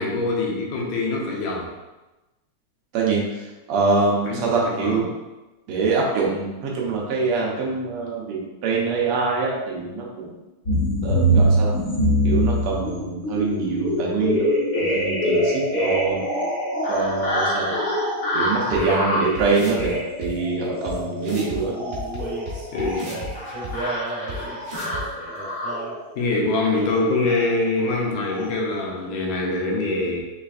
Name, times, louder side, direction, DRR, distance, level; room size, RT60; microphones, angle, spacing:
voice 1, 0.0-1.7 4.3-5.0 5.7-5.9 22.7-23.1 26.2-30.2, left 2 dB, 80° left, -2 dB, 2.1 m, -24 dB
voice 2, 2.9-5.0 5.7-10.3 11.0-11.7 12.2-14.4 14.8-16.3 16.9-17.7 18.3-21.7, right 4 dB, 75° right, -3 dB, 1.3 m, -24 dB
sound 1, 10.7-26.0 26.8-27.0 27.3-27.5 27.8-28.0 28.3-28.5, equal, 60° left, 1.0 m, -24 dB
sound 2, 18.7-18.8 19.3-19.9 20.2-20.3 20.8-20.9 21.2-21.6 21.9-23.3 23.6-23.7 24.3-24.4 24.6-25.0, right 1 dB, 55° right, 1.1 m, -34 dB
Male singing, 21.6-26.0 26.7-27.1 27.7-28.0 28.3-29.2, right 2 dB, 40° right, 0.8 m, -35 dB
5.5 x 3.3 x 2.5 m, 1.1 s
omnidirectional pair, 3.4 m